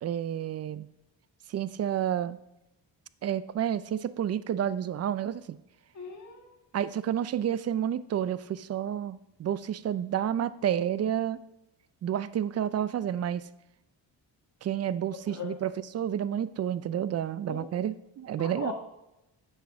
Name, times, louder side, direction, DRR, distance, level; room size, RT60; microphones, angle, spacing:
voice 1, 0.0-0.9 1.5-2.4 3.2-5.6 6.7-11.4 12.0-13.4 14.6-18.7, right 10 dB, 35° right, 16 dB, 0.4 m, -30 dB
voice 2, 5.9-6.5 15.3-15.6 17.5-17.8 18.4-18.7, left 5 dB, 40° left, 0 dB, 2.1 m, -39 dB
7.8 x 6.2 x 3.5 m, 0.90 s
cardioid pair, 80°, 45 cm